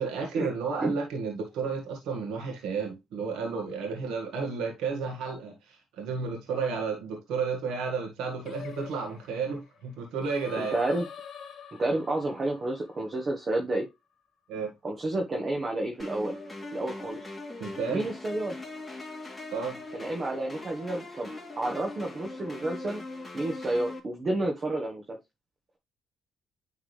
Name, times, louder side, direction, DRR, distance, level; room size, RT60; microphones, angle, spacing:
voice 1, 0.0-10.8 14.5-14.7 17.6-18.0 19.5-19.8, right 5 dB, 90° right, 1.7 m, -32 dB
Singing, 8.4-13.7, left 8 dB, 60° left, 1.0 m, -45 dB
voice 2, 10.6-11.1 11.8-13.9 14.8-16.4 16.7-17.3 17.9-18.6 19.9-21.3 21.6-23.0 23.3-25.2, right 2 dB, 40° right, 1.4 m, -30 dB
sound 1, 16.0-24.0, left 2 dB, 5° left, 3.2 m, -41 dB
10.0 x 3.7 x 3.3 m
cardioid pair, 90°, 0 cm